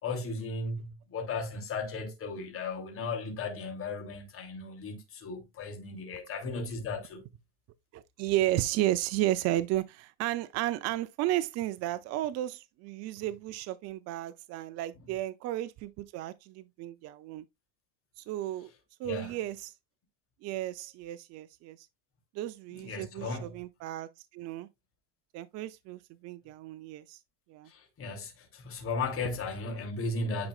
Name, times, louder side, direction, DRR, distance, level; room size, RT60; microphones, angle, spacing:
voice 1, 0.0-7.2 19.0-19.4 22.8-23.5 27.7-30.5, left 3 dB, 35° left, 2.9 m, -36 dB
voice 2, 7.9-17.4 18.2-18.7 19.0-19.7 20.4-21.9 22.3-24.7 25.3-27.2 27.5-27.7, right 14 dB, 45° right, 0.6 m, -33 dB
9.5 x 5.0 x 2.4 m
supercardioid pair, 120°, 38 cm